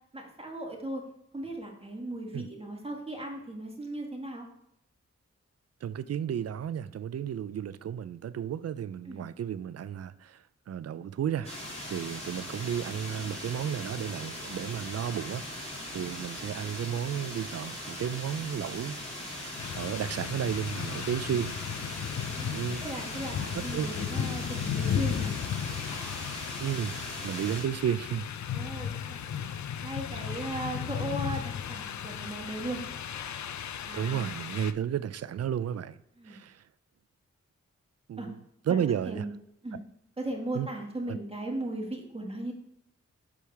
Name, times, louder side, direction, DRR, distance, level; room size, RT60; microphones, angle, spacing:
voice 1, 0.1-1.0 1.3-4.5 9.1-9.2 22.2-22.5 22.8-25.4 28.5-29.3 29.8-32.8 33.8-34.4 36.2-36.4 38.2-38.3 38.7-38.8 39.1-39.3 39.6-39.8 40.2-42.5, right 1 dB, 20° right, 1.8 m, -37 dB
voice 2, 5.8-11.5 11.9-19.0 19.4-21.5 22.5-22.8 23.7-23.9 26.6-27.0 27.2-28.3 30.2-30.3 33.9-36.0 36.2-36.6 38.1-38.4 38.7-39.2 40.5-40.7 41.1-41.2, right 9 dB, 60° right, 0.4 m, -33 dB
sound 1, 11.4-27.6, left 1 dB, 20° left, 2.6 m, -40 dB
sound 2, 19.6-34.7, left 8 dB, 75° left, 0.5 m, -35 dB
7.0 x 4.7 x 3.4 m
cardioid pair, 65°, 29 cm